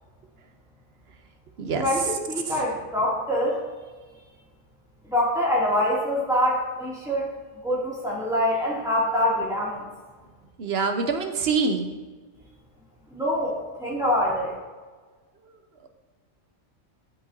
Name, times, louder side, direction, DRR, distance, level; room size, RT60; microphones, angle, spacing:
voice 1, 1.8-3.6 5.1-7.3 7.6-9.8 13.1-14.5, left 1 dB, ahead, -7 dB, 2.4 m, -25 dB
voice 2, 10.6-11.9, right 4 dB, 55° right, 6 dB, 0.9 m, -25 dB
13.0 x 5.4 x 2.7 m, 1.4 s
omnidirectional pair, 1.4 m